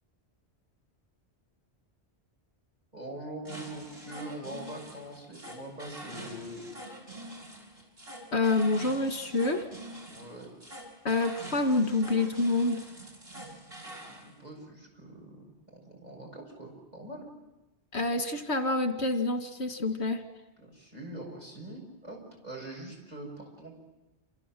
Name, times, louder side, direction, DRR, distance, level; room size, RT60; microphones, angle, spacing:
voice 1, 2.9-6.6 10.1-10.5 13.8-17.3 20.6-23.8, right 1 dB, 40° right, -1 dB, 7.2 m, -43 dB
sound 1, 3.4-14.3, right 1 dB, 60° right, 5.8 m, -45 dB
voice 2, 8.3-9.6 11.0-12.8 17.9-20.2, left 2 dB, 80° left, 7 dB, 2.3 m, -27 dB
28.0 x 27.0 x 7.7 m, 1.0 s
omnidirectional pair, 1.1 m